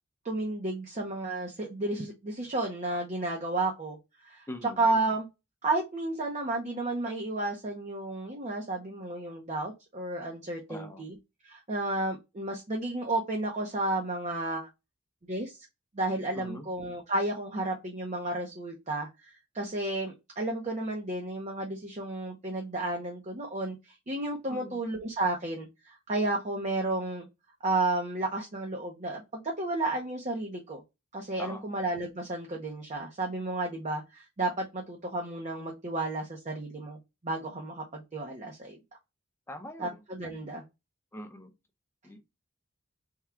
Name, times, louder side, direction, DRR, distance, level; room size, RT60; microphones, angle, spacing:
voice 1, 0.2-4.0 4.2-5.3 5.6-11.2 11.4-14.7 15.3-15.6 15.9-19.3 19.5-23.8 24.1-27.3 27.6-30.8 31.1-37.0 37.2-38.8 39.8-40.6, right 2 dB, 35° right, 0.7 m, -32 dB
voice 2, 4.5-4.9 10.7-11.0 16.3-16.7 24.5-24.8 31.4-31.6 39.5-40.0 41.1-41.5 42.0-42.2, equal, 10° left, 0.7 m, -42 dB
3.6 x 2.3 x 4.3 m
head